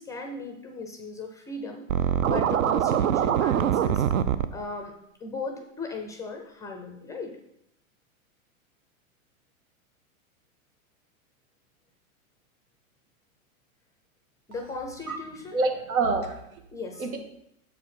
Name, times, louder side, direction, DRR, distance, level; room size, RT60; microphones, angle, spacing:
voice 1, 0.0-4.0 4.5-4.9 5.2-7.3 14.5-15.6 16.7-17.1, left 3 dB, 10° left, 4 dB, 0.4 m, -37 dB
Scratching (performance technique), 1.9-4.5, right 10 dB, 70° right, 0.6 m, -23 dB
voice 2, 15.5-16.6 17.0-17.2, right 3 dB, 90° right, 4 dB, 1.7 m, -27 dB
7.3 x 4.9 x 5.8 m, 0.78 s
hypercardioid pair, 135°, 42 cm